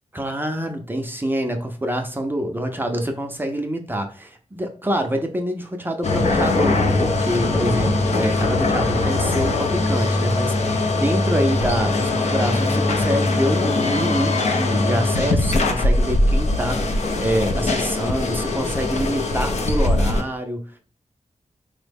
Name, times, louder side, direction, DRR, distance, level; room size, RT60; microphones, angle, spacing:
voice 1, 0.1-20.7, equal, 15° right, 4 dB, 0.4 m, -26 dB
sound 1, 6.0-20.2, left 2 dB, 65° left, 0.5 m, -21 dB
3.8 x 2.0 x 3.3 m, 0.40 s
wide cardioid pair, 130°, 13 cm